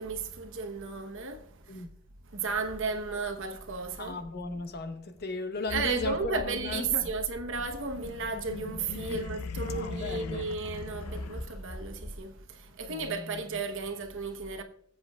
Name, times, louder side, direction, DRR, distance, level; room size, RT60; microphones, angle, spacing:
voice 1, 0.0-1.8 2.2-4.2 5.7-14.6, right 4 dB, 60° right, 1.0 m, -34 dB
sound 1, 2.5-5.0 5.6-10.3 11.0-12.2, equal, 10° right, 1.8 m, -45 dB
voice 2, 4.0-7.1 9.1-9.3 9.7-10.5 12.9-13.6, left 2 dB, 45° left, 1.0 m, -36 dB
sound 2, 7.7-11.9, left 4 dB, 85° left, 0.6 m, -40 dB
19.5 x 8.0 x 2.4 m
head